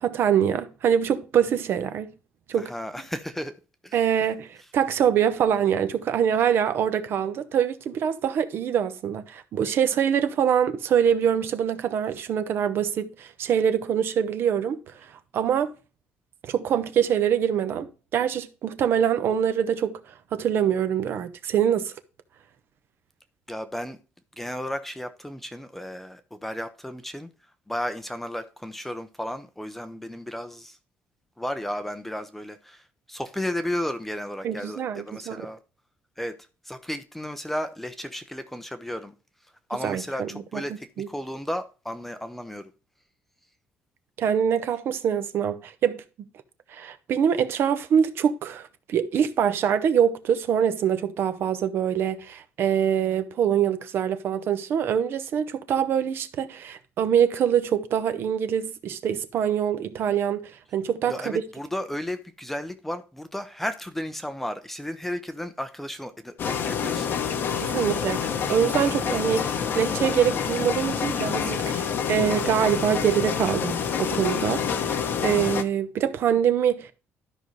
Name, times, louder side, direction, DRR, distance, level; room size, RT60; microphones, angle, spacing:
voice 1, 0.0-2.1 2.5-2.7 3.9-14.8 15.3-15.7 16.4-20.0 20.3-21.9 34.4-35.5 39.8-40.6 41.0-41.1 44.2-46.0 46.7-61.1 67.6-76.9, right 8 dB, 50° right, 0.9 m, -24 dB
voice 2, 2.6-3.5 3.8-4.0 23.5-24.0 24.4-27.3 27.7-30.8 31.4-35.6 36.2-36.3 36.6-39.1 39.7-42.7 61.1-67.2, left 1 dB, 5° left, 0.6 m, -33 dB
sound 1, 66.4-75.6, left 7 dB, 45° left, 0.9 m, -27 dB
13.0 x 5.4 x 3.1 m
cardioid pair, 175°, 5 cm